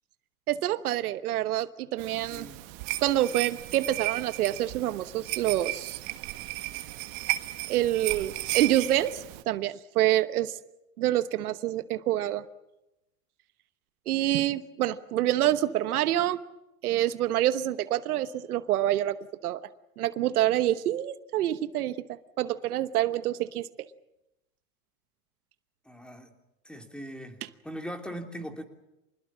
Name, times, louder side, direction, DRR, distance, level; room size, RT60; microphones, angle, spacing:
voice 1, 0.5-2.5 3.0-6.0 7.7-10.5 11.0-12.4 14.1-16.4 16.8-19.2 19.4-19.6 20.0-21.9 22.4-23.7, right 13 dB, 90° right, 13 dB, 1.2 m, -27 dB
sound 1, 2.0-9.4, right 18 dB, 60° right, 1.8 m, -34 dB
voice 2, 2.2-2.6 25.8-26.3 26.6-28.6, equal, ahead, 5 dB, 3.0 m, -40 dB
25.5 x 20.5 x 7.4 m, 0.92 s
supercardioid pair, 110°, 43 cm